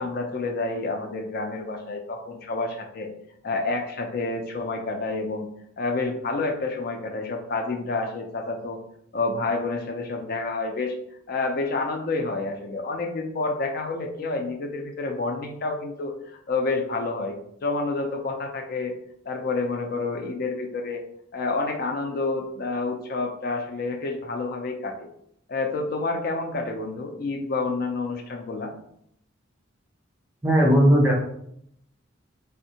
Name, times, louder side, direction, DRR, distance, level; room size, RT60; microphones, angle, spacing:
voice 1, 0.0-3.1 3.4-5.5 5.8-8.8 9.1-11.0 11.3-17.3 17.6-18.9 19.3-21.0 21.3-25.1 25.5-28.7, left 3 dB, 50° left, 3 dB, 0.4 m, -29 dB
voice 2, 30.4-31.2, equal, 10° right, -1 dB, 0.5 m, -17 dB
3.4 x 2.1 x 2.7 m, 0.72 s
head